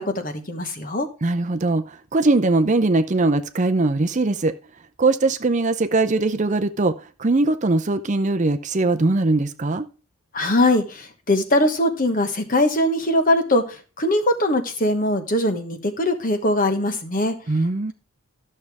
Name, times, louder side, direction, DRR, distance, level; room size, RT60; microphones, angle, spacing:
voice 1, 0.0-1.1 10.3-17.3, left 1 dB, 35° left, 1.2 m, -21 dB
voice 2, 1.2-4.5 5.0-9.9 17.5-17.9, right 2 dB, 35° right, 0.5 m, -21 dB
13.0 x 6.6 x 3.5 m
head